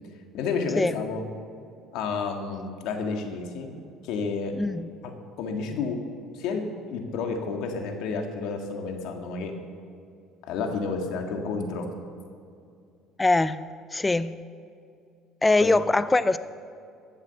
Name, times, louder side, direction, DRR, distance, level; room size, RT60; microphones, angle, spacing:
voice 1, 0.3-1.2 1.9-3.7 4.0-4.5 5.0-5.1 5.4-6.0 6.3-9.5 10.5-11.9 15.6-15.7, left 4 dB, 75° left, 3 dB, 1.8 m, -30 dB
voice 2, 4.6-4.9 13.2-13.6 13.9-14.4 15.4-16.4, left 2 dB, 15° left, 15 dB, 0.4 m, -22 dB
14.5 x 7.2 x 7.1 m, 2.4 s
cardioid pair, 125°, 0 cm